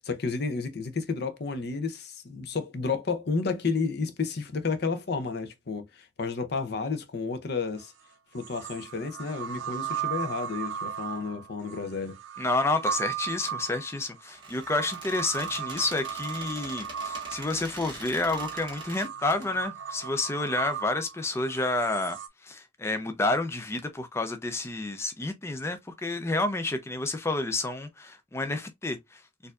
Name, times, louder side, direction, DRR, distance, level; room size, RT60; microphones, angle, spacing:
voice 1, 0.0-7.9 8.3-12.2, left 4 dB, 60° left, 0.6 m, -31 dB
sound 1, 7.8-7.9 8.4-22.3, right 8 dB, 90° right, 0.5 m, -36 dB
voice 2, 12.4-22.2 22.4-29.2, left 2 dB, 15° left, 0.4 m, -29 dB
Squeak, 14.3-19.4, right 3 dB, 25° right, 1.3 m, -44 dB
4.3 x 2.6 x 2.3 m
head